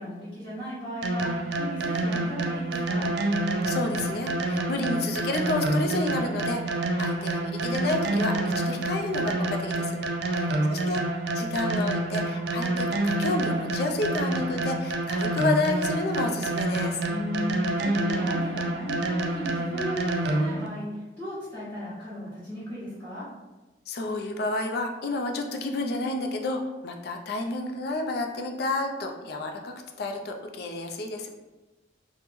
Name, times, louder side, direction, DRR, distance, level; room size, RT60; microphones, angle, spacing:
voice 1, 0.0-3.1 10.2-10.7 17.1-23.3, left 1 dB, 10° left, -17 dB, 1.2 m, -36 dB
sound 1, 1.0-20.7, right 2 dB, 65° right, 0.3 m, -28 dB
voice 2, 3.6-10.0 10.3-11.0 11.4-17.0 23.9-31.3, left 2 dB, 60° left, 4 dB, 0.4 m, -30 dB
3.1 x 2.0 x 3.3 m, 1.1 s
head